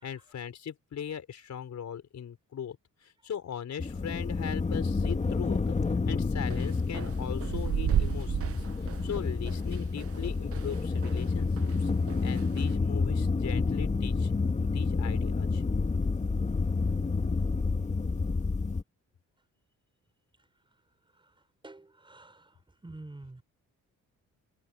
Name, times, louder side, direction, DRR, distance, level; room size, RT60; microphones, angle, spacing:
voice 1, 0.0-2.8 3.0-5.8 6.0-11.9 12.2-14.3 14.6-15.6, left 8 dB, 55° left, 5.1 m, -39 dB
sound 1, 3.8-18.8, left 4 dB, 20° left, 1.5 m, -29 dB
sound 2, 6.5-11.3 11.6-12.7, right 9 dB, 45° right, 0.7 m, -33 dB
voice 2, 21.6-22.5 22.8-23.4, right 2 dB, 15° right, 5.1 m, -47 dB
cardioid pair, 115°, 32 cm